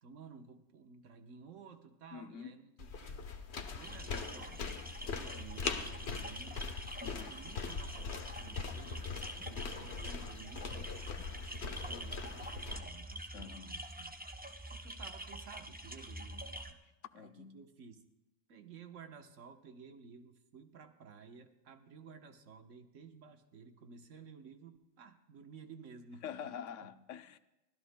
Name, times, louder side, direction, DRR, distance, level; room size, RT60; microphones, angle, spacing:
voice 1, 0.0-6.6 7.1-10.9 11.2-14.1 14.7-16.8 17.1-18.0 18.5-26.5, right 5 dB, 80° right, 1.4 m, -54 dB
voice 2, 2.1-2.6 7.0-7.3 13.3-13.7 17.1-17.6 26.2-27.4, left 8 dB, 80° left, 1.0 m, -46 dB
sound 1, 2.8-12.8, left 5 dB, 60° left, 1.2 m, -41 dB
sound 2, 3.8-16.7, right 1 dB, 10° right, 0.5 m, -46 dB
24.0 x 16.0 x 2.2 m
omnidirectional pair, 1.3 m